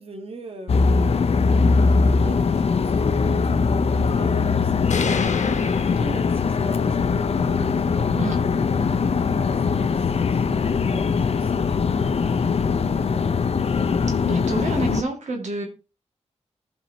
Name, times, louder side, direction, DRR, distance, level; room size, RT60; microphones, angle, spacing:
voice 1, 0.0-1.5 1.9-8.6 9.2-10.0 10.3-13.4, right 2 dB, 55° right, 4 dB, 1.4 m, -41 dB
sound 1, 0.7-15.0, left 5 dB, 60° left, 0.6 m, -21 dB
sound 2, 4.9-6.9, left 5 dB, 85° left, 1.0 m, -30 dB
voice 2, 14.3-15.6, right 3 dB, 90° right, 2 dB, 1.9 m, -29 dB
15.5 x 5.4 x 2.8 m, 0.30 s
wide cardioid pair, 75°, 12 cm